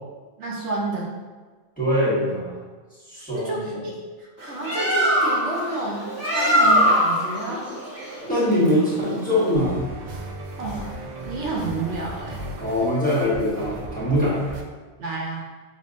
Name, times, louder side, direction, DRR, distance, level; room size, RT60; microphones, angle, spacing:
voice 1, 0.4-1.1 3.3-7.7 10.6-10.9 11.2-12.4 15.0-15.5, right 2 dB, 70° right, -3 dB, 1.0 m, -30 dB
voice 2, 1.8-2.6 3.1-3.8 8.2-9.8 12.6-14.4, left 1 dB, 10° left, -10 dB, 1.0 m, -22 dB
Bird, 4.4-9.6, equal, 15° right, 0.8 m, -22 dB
sound 1, 9.6-14.6, right 2 dB, 90° right, 0.3 m, -36 dB
5.4 x 2.5 x 2.5 m, 1.4 s
omnidirectional pair, 1.3 m